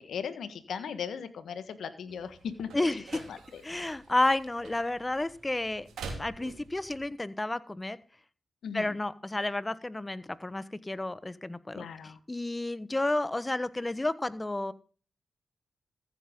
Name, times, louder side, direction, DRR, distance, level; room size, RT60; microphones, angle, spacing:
voice 1, 0.0-2.9 3.3-3.6 8.6-8.9 11.7-12.2, left 7 dB, 80° left, 11 dB, 1.4 m, -38 dB
sound 1, 2.1-7.1, right 4 dB, 85° right, 2.8 m, -47 dB
voice 2, 2.7-3.2 3.6-5.9 6.2-8.0 8.7-14.7, left 2 dB, 25° left, 15 dB, 1.2 m, -31 dB
15.0 x 8.5 x 3.8 m, 0.37 s
supercardioid pair, 40°, 0 cm